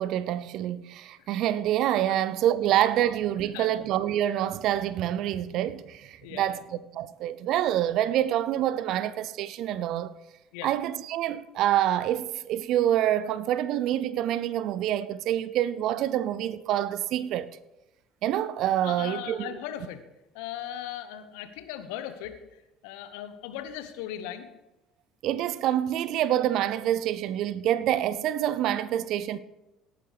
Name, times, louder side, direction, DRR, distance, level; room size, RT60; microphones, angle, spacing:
voice 1, 0.0-6.6 6.9-10.1 10.6-17.5 18.2-19.5 25.2-29.4, right 12 dB, 60° right, 0.4 m, -26 dB
voice 2, 3.4-3.7 6.2-6.6 10.5-10.7 18.8-20.0 20.3-24.5, left 11 dB, 70° left, 1.0 m, -38 dB
18.0 x 8.9 x 3.4 m
figure-of-eight pair, 60°, 0 cm